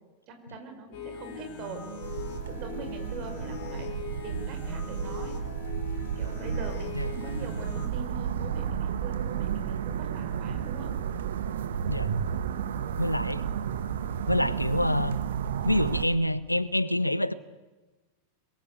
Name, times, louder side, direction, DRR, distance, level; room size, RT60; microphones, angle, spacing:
voice 1, 0.3-1.9 2.5-3.9 4.2-5.4 6.2-10.9, right 4 dB, 40° right, 6 dB, 5.0 m, -42 dB
sound 1, 0.9-7.9, left 6 dB, 50° left, 3.7 m, -40 dB
sound 2, 2.0-16.1, right 8 dB, 60° right, 1.3 m, -32 dB
voice 2, 13.0-13.4 14.3-15.2 15.7-17.3, left 1 dB, 85° left, 18 dB, 0.9 m, -26 dB
22.5 x 22.0 x 8.3 m, 1.2 s
figure-of-eight pair, 90°, 0 cm